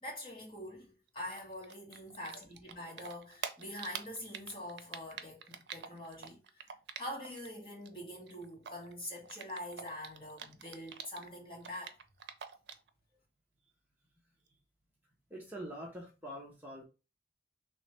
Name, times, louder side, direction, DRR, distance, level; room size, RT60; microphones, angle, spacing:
voice 1, 0.0-6.6 6.9-12.0, left 1 dB, 30° left, 1.5 m, -45 dB
Typing, 1.3-7.5 7.7-11.3 11.6-12.9, right 7 dB, 80° right, 0.5 m, -45 dB
voice 2, 15.3-16.8, equal, 10° right, 0.8 m, -44 dB
3.2 x 3.1 x 4.3 m
head